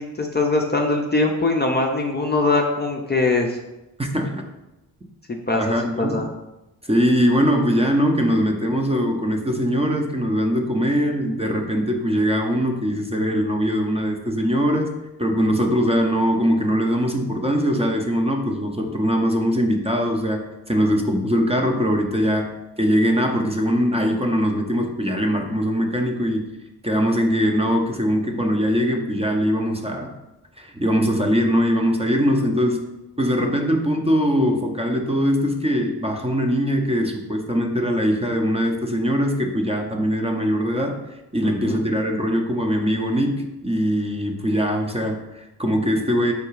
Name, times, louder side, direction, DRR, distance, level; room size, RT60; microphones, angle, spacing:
voice 1, 0.0-3.6 5.3-6.3 41.4-41.8, left 3 dB, 20° left, 1 dB, 0.6 m, -22 dB
voice 2, 4.0-4.4 5.5-6.3 6.8-14.9 15.2-26.6 26.8-30.1 30.6-32.9 33.2-41.0 41.3-46.3, equal, 15° right, 2 dB, 0.8 m, -21 dB
4.9 x 2.3 x 4.7 m, 0.98 s
hypercardioid pair, 45°, 47 cm